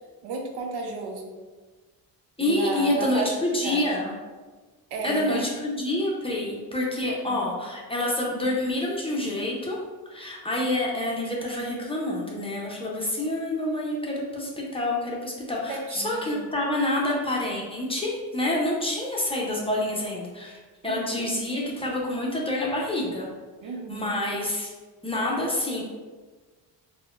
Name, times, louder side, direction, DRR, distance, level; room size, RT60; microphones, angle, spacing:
voice 1, 0.2-1.3 2.4-3.3 3.6-3.9 4.9-5.4 7.0-7.4 15.7-16.5 20.8-21.3 23.6-24.1, right 3 dB, 75° right, 1 dB, 0.7 m, -33 dB
voice 2, 2.4-4.1 5.0-9.8 10.1-20.6 20.8-23.3 23.9-24.7 25.0-25.8, left 1 dB, 15° left, -3 dB, 0.6 m, -27 dB
4.0 x 2.2 x 2.4 m, 1.4 s
cardioid pair, 95°, 40 cm